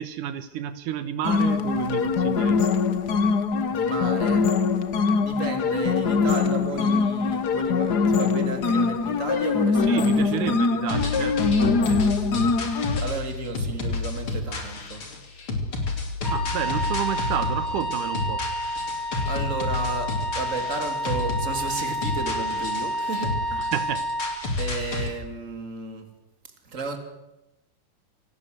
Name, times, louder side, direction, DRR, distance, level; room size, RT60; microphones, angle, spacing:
voice 1, 0.0-2.9 9.8-12.1 16.3-18.5 23.5-24.1, right 11 dB, 80° right, 12 dB, 2.6 m, -31 dB
sound 1, 1.2-13.0, left 4 dB, 75° left, 0.9 m, -23 dB
voice 2, 3.7-4.5 5.2-10.5 13.0-15.1 19.2-23.7 24.6-26.1 26.6-27.0, right 4 dB, 25° right, 6 dB, 3.1 m, -33 dB
sound 2, 10.9-25.1, left 3 dB, 40° left, 3.9 m, -30 dB
Wind instrument woodwind instrument, 16.2-24.4, equal, 5° right, 4.0 m, -30 dB
27.0 x 18.5 x 7.9 m, 0.94 s
omnidirectional pair, 3.7 m